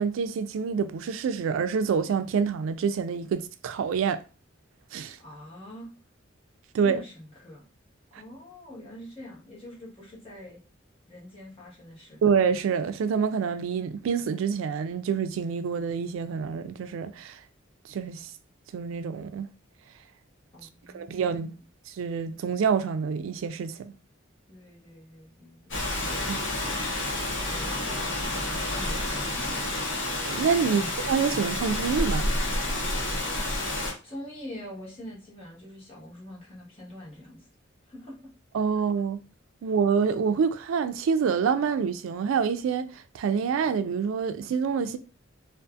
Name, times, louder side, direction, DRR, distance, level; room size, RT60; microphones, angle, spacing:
voice 1, 0.0-4.2 4.9-5.2 6.7-7.0 12.2-17.4 17.9-18.3 18.7-19.5 20.9-21.5 21.9-23.9 26.3-26.4 30.3-32.3 38.5-39.2 39.6-45.0, right 6 dB, 85° right, 0.3 m, -27 dB
voice 2, 5.2-5.9 6.8-7.6 8.2-10.6 11.1-12.2 20.5-21.2 24.5-26.5 27.3-29.6 30.6-30.9 34.0-37.5 37.8-38.2, left 1 dB, 30° left, 1.1 m, -44 dB
Rain, 25.7-33.9, left 1 dB, 70° left, 1.1 m, -29 dB
2.6 x 2.4 x 2.3 m
head